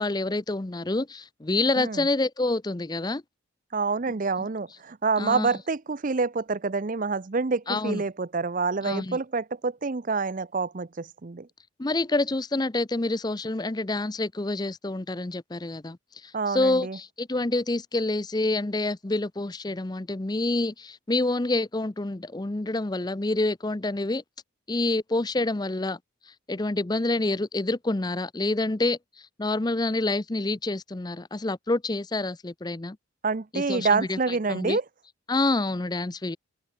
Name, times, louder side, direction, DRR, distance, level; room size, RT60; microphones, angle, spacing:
voice 1, 0.0-3.2 5.2-5.5 7.7-8.0 8.8-9.2 11.8-16.0 16.2-24.2 24.7-26.0 26.5-33.0 33.5-34.8 35.3-36.4, left 2 dB, 20° left, 0.6 m, -27 dB
voice 2, 1.8-2.1 3.7-11.5 16.3-17.0 33.2-34.8, right 4 dB, 40° right, 0.6 m, -27 dB
head